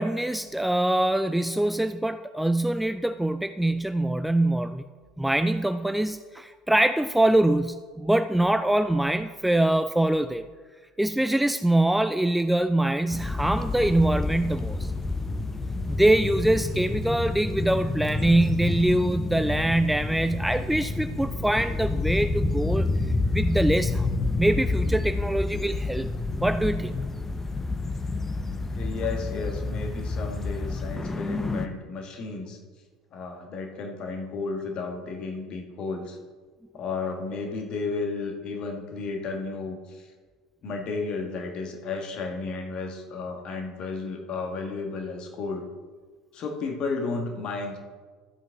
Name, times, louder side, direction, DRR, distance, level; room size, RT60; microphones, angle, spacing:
voice 1, 0.0-4.8 5.2-10.4 11.0-14.9 15.9-22.9 23.3-24.1 24.4-26.1 26.4-26.9, right 1 dB, 5° right, 10 dB, 0.3 m, -24 dB
sound 1, 13.1-31.7, left 3 dB, 15° left, 0.7 m, -29 dB
voice 2, 28.7-32.6 33.1-36.2 36.7-40.1 40.6-45.7 46.3-47.8, left 4 dB, 45° left, 3 dB, 1.6 m, -33 dB
12.5 x 7.5 x 3.6 m, 1.5 s
figure-of-eight pair, 65°, 2 cm